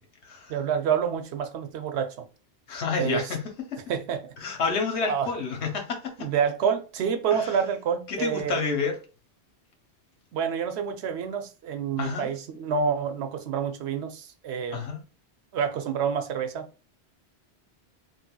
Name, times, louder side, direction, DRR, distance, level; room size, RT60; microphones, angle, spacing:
voice 1, 0.5-2.3 3.0-3.3 3.9-4.3 5.0-5.3 6.2-8.6 10.3-14.9 15.5-16.7, right 7 dB, 80° right, 0.8 m, -28 dB
voice 2, 2.7-3.4 4.4-6.1 7.3-7.5 8.1-9.0 12.0-12.3 14.7-15.0, left 5 dB, 85° left, 1.1 m, -29 dB
3.3 x 2.6 x 2.2 m
omnidirectional pair, 1.1 m